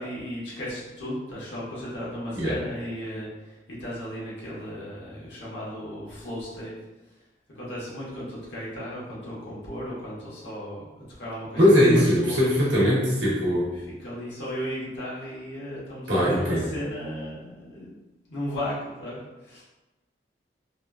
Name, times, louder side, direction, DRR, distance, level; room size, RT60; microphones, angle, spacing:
voice 1, 0.0-6.7 7.5-12.5 13.7-18.0 18.2-19.6, equal, 75° left, -7 dB, 1.1 m, -35 dB
voice 2, 11.6-13.7 16.1-16.7, equal, 75° right, -6 dB, 0.9 m, -20 dB
2.9 x 2.3 x 2.3 m, 1.1 s
head